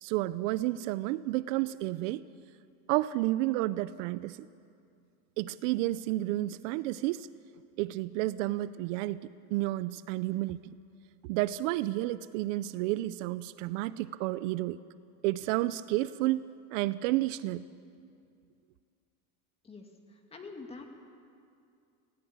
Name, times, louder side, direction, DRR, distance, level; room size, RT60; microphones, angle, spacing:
voice 1, 0.0-2.2 2.9-4.4 5.4-7.3 7.8-9.2 9.5-10.7 11.2-14.8 15.2-17.6, right 16 dB, 65° right, 16 dB, 0.6 m, -31 dB
voice 2, 19.6-20.9, left 3 dB, 15° left, 3 dB, 2.0 m, -46 dB
18.0 x 17.5 x 8.7 m, 2.4 s
cardioid pair, 160°, 42 cm